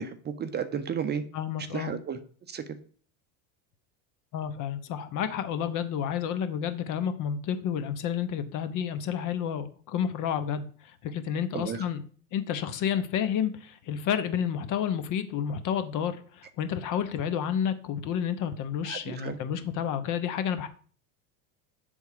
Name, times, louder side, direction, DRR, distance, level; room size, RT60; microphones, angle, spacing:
voice 1, 0.0-1.2 1.7-2.2 2.5-2.6 11.5-11.8 18.9-19.4, right 7 dB, 25° right, 9 dB, 0.6 m, -33 dB
voice 2, 1.3-1.9 4.3-12.0 12.3-20.7, left 8 dB, 50° left, 10 dB, 0.9 m, -30 dB
8.1 x 3.6 x 4.9 m, 0.44 s
supercardioid pair, 115°, 39 cm